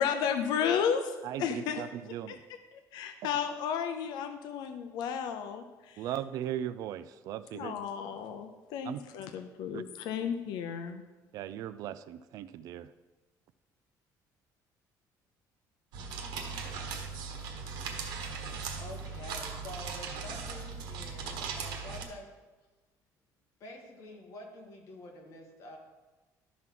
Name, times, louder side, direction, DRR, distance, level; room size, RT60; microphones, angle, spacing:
voice 1, 0.0-1.1 1.4-1.8 2.3-2.4 2.7-6.0 7.5-11.0, left 7 dB, 75° left, 7 dB, 0.6 m, -33 dB
voice 2, 1.2-2.4 6.0-7.8 8.8-9.0 9.7-9.8 11.3-12.9, right 11 dB, 55° right, 14 dB, 0.4 m, -38 dB
sound 1, 15.9-22.1, right 5 dB, 90° right, 1.3 m, -38 dB
voice 3, 18.1-22.4 23.6-25.8, left 1 dB, 50° left, 0 dB, 1.8 m, -48 dB
12.5 x 6.0 x 3.8 m, 1.2 s
cardioid pair, 180°, 7 cm